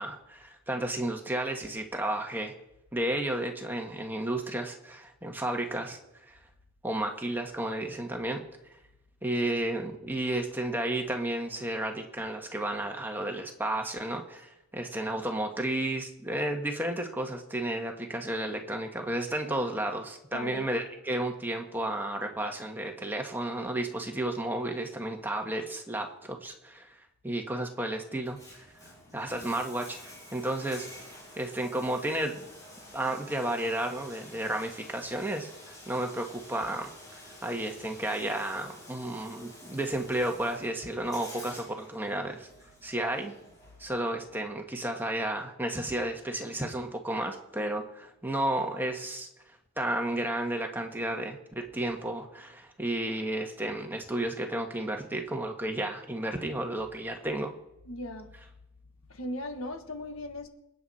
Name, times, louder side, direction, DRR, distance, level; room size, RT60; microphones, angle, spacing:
voice 1, 0.0-2.5 2.9-6.4 6.8-8.4 9.2-27.0 27.2-28.7 29.1-30.0 30.3-30.9 31.4-32.4 32.9-36.9 37.4-42.5 42.8-43.3 43.8-49.3 49.8-57.5, right 1 dB, 10° right, 2 dB, 1.5 m, -32 dB
voice 2, 20.3-20.7 57.9-58.3 59.1-60.5, left 1 dB, 75° left, 7 dB, 1.5 m, -37 dB
Bathtub (filling or washing), 28.1-44.1, left 1 dB, 15° left, 6.9 m, -50 dB
27.0 x 9.3 x 4.3 m, 0.91 s
head